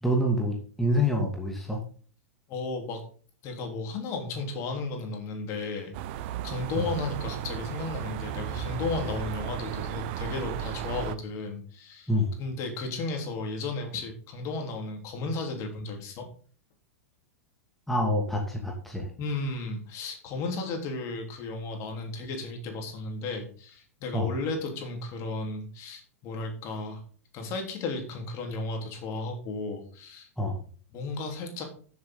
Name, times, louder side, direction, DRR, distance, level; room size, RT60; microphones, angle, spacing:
voice 1, 0.0-1.8 6.7-6.9 12.1-12.3 17.9-19.1 24.1-24.3 30.4-30.6, left 1 dB, 5° left, -1 dB, 2.5 m, -26 dB
voice 2, 2.5-3.0 3.4-5.9 6.4-12.1 12.4-16.3 19.2-27.0 27.3-30.3 30.9-31.6, left 3 dB, 40° left, 3 dB, 3.9 m, -34 dB
sound 1, 5.9-11.2, right 9 dB, 45° right, 0.9 m, -35 dB
14.0 x 8.0 x 4.0 m, 0.43 s
figure-of-eight pair, 100°, 8 cm